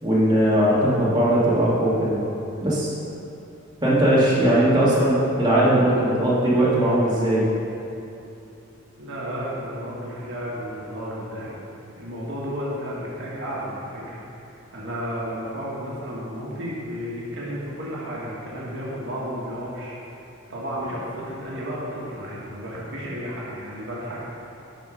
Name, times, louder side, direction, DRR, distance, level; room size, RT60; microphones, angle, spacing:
voice 1, 0.0-2.2 2.6-2.9 3.8-7.4, right 1 dB, 20° right, -9 dB, 1.7 m, -19 dB
voice 2, 4.0-4.9 9.0-11.5 12.0-20.0 20.5-24.2, equal, 60° right, -6 dB, 1.5 m, -33 dB
10.0 x 4.3 x 4.9 m, 2.8 s
head